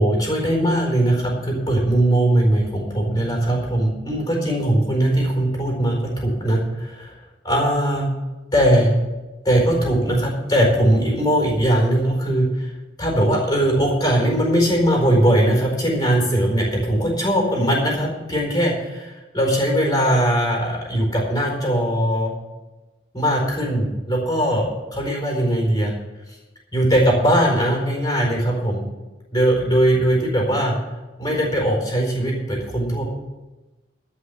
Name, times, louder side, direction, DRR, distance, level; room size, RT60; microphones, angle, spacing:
voice 1, 0.0-7.1 7.4-8.1 8.5-8.9 9.4-12.7 13.0-22.3 23.1-25.9 26.3-26.4 26.7-28.8 29.3-30.8 31.2-33.1, right 1 dB, 20° left, -1 dB, 4.3 m, -20 dB
13.5 x 5.9 x 9.5 m, 1.1 s
head